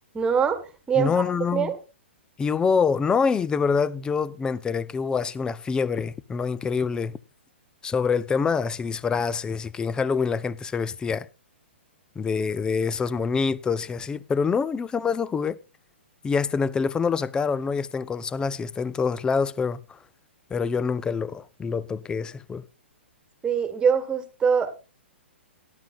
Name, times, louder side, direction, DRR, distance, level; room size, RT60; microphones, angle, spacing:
voice 1, 0.1-1.2 1.5-1.8 23.4-24.7, right 6 dB, 15° right, 1.8 m, -23 dB
voice 2, 1.0-1.7 2.4-7.2 7.8-11.3 12.2-15.6 16.2-19.8 20.5-22.6, left 5 dB, 10° left, 0.6 m, -26 dB
18.0 x 11.5 x 2.6 m
figure-of-eight pair, 120°, 7 cm